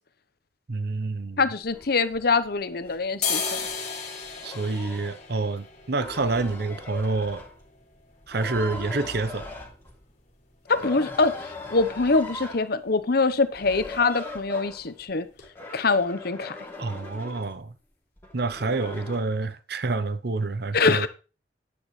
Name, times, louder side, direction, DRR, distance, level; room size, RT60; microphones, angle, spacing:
voice 1, 0.7-1.4 4.4-7.4 8.3-9.5 16.8-17.7 18.3-21.1, right 3 dB, 65° right, 0.8 m, -28 dB
voice 2, 1.4-3.6 10.7-11.4 11.7-15.3 15.7-16.5 20.7-21.1, left 4 dB, 60° left, 1.0 m, -24 dB
sound 1, 1.6-2.7 3.0-10.8 11.1-11.2 11.4-12.0 12.3-12.5 12.8-13.0 13.3-14.0 14.4-14.5 15.0-15.1 15.4-15.5, left 5 dB, 45° left, 2.6 m, -36 dB
sound 2, 1.7-1.9 2.8-3.0 3.5-3.8 4.2-5.2 5.8-7.8 8.2-10.1 10.7-12.7 13.5-15.0 15.4-17.6 18.2-19.2, left 2 dB, 15° left, 3.2 m, -40 dB
10.5 x 9.5 x 3.2 m
head